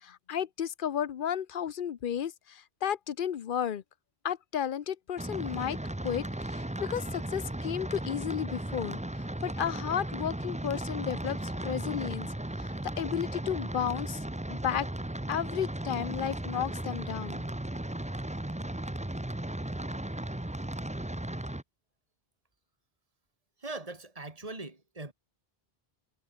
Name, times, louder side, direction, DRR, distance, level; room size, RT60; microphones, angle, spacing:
voice 1, 0.0-3.8 4.2-5.8 6.0-12.3 12.6-14.2 14.5-14.9 15.3-17.4, left 9 dB, 60° left, 0.8 m, -33 dB
sound 1, 5.2-21.6, right 1 dB, 5° right, 0.8 m, -36 dB
voice 2, 23.6-25.1, right 2 dB, 35° right, 3.0 m, -41 dB
omnidirectional pair, 1.0 m